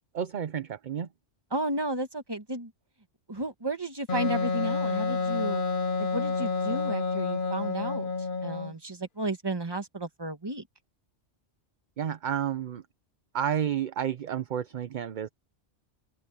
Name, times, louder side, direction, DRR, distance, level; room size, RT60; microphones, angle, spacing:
voice 1, 0.1-1.1 12.0-12.8 13.3-15.3, right 9 dB, 50° right, 0.7 m, -31 dB
voice 2, 1.5-2.7 3.3-5.6 6.0-8.1 8.4-10.6, right 1 dB, 20° right, 1.5 m, -33 dB
Wind instrument woodwind instrument, 4.1-8.7, left 4 dB, 50° left, 1.0 m, -29 dB
open air
omnidirectional pair, 1.2 m